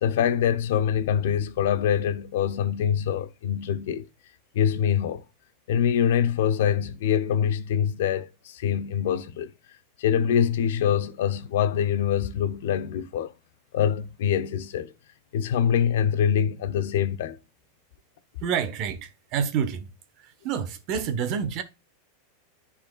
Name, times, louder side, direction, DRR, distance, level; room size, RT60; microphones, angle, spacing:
voice 1, 0.0-4.1 4.5-5.2 5.7-9.5 10.0-13.3 13.7-14.9 15.3-17.4, left 8 dB, 75° left, 0.7 m, -24 dB
voice 2, 18.4-19.9 20.2-21.6, right 7 dB, 45° right, 1.2 m, -28 dB
10.5 x 4.2 x 2.4 m
supercardioid pair, 140°, 0 cm